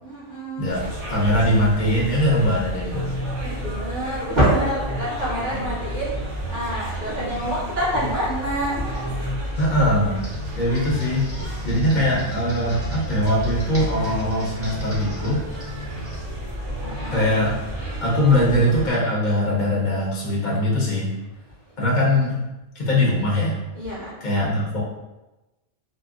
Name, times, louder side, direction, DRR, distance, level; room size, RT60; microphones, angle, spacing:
voice 1, 0.0-0.7 3.4-6.1 6.5-9.0 10.7-10.9 16.8-17.2 23.7-24.1, equal, 40° right, -10 dB, 1.4 m, -26 dB
sound 1, 0.7-18.9, equal, 85° right, 1.3 m, -31 dB
voice 2, 1.1-3.1 9.6-10.2 10.6-11.3 11.6-15.4 17.1-17.5 18.0-21.1 21.8-22.4 22.7-23.5 24.2-24.8, left 1 dB, 45° left, -6 dB, 0.8 m, -21 dB
Computer keyboard, 10.2-16.3, right 1 dB, 15° right, 0.7 m, -42 dB
3.9 x 2.1 x 2.4 m, 1.0 s
omnidirectional pair, 1.3 m